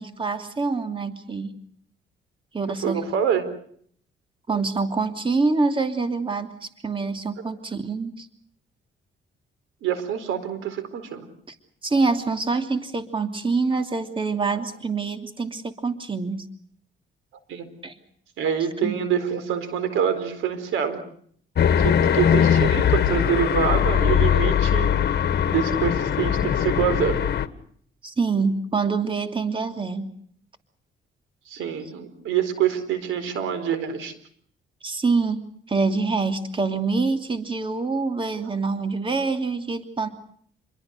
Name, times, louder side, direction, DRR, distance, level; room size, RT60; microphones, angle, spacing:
voice 1, 0.0-1.5 2.5-3.0 4.5-8.3 11.5-11.6 11.8-16.4 17.8-17.9 18.8-19.0 28.0-30.1 34.8-35.4 35.7-40.1, right 4 dB, 25° right, 7 dB, 2.9 m, -25 dB
voice 2, 2.7-3.4 9.8-11.3 17.5-17.7 18.4-21.0 21.8-24.9 25.5-27.2 31.5-34.1, right 8 dB, 90° right, 12 dB, 4.4 m, -26 dB
sound 1, 21.6-27.5, left 9 dB, 55° left, 1.8 m, -20 dB
28.5 x 22.5 x 6.6 m, 0.62 s
cardioid pair, 90°, 20 cm